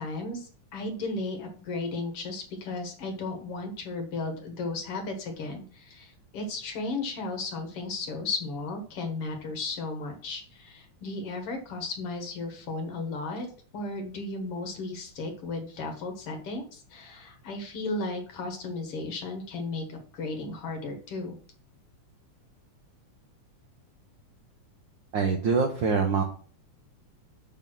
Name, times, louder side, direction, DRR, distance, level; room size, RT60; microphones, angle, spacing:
voice 1, 0.0-13.5 13.7-21.4, left 3 dB, 55° left, 4 dB, 2.0 m, -35 dB
voice 2, 25.1-26.2, right 5 dB, 90° right, 4 dB, 1.0 m, -24 dB
7.0 x 4.2 x 6.0 m, 0.43 s
omnidirectional pair, 3.5 m